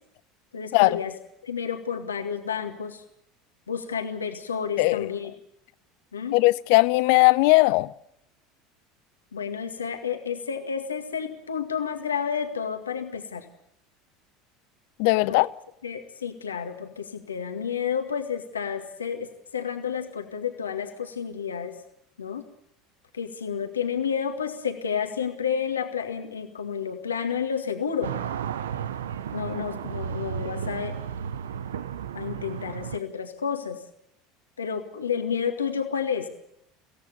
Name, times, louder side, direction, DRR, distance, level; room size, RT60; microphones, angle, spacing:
voice 1, 0.5-1.1 1.4-3.0 3.7-5.3 6.1-6.4 9.3-13.5 15.3-15.4 15.8-21.8 22.2-22.4 23.1-28.2 29.3-31.0 32.1-33.8 34.6-36.3, left 7 dB, 80° left, 2.0 m, -30 dB
voice 2, 4.8-5.1 6.3-7.9 15.0-15.5, left 22 dB, 60° left, 0.7 m, -19 dB
sound 1, 28.0-33.0, right 8 dB, 75° right, 0.8 m, -33 dB
24.5 x 17.0 x 6.9 m
figure-of-eight pair, 70°, 0 cm